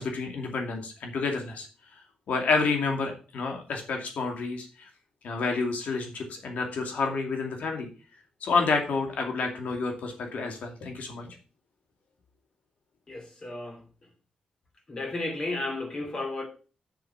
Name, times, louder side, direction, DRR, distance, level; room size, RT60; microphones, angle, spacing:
voice 1, 0.0-1.7 2.3-4.7 5.2-7.9 8.4-11.3, left 4 dB, 85° left, 2.4 m, -29 dB
voice 2, 13.1-13.8 14.9-16.5, left 2 dB, 30° left, 2.8 m, -33 dB
7.8 x 6.9 x 5.7 m
wide cardioid pair, 165°, 2 cm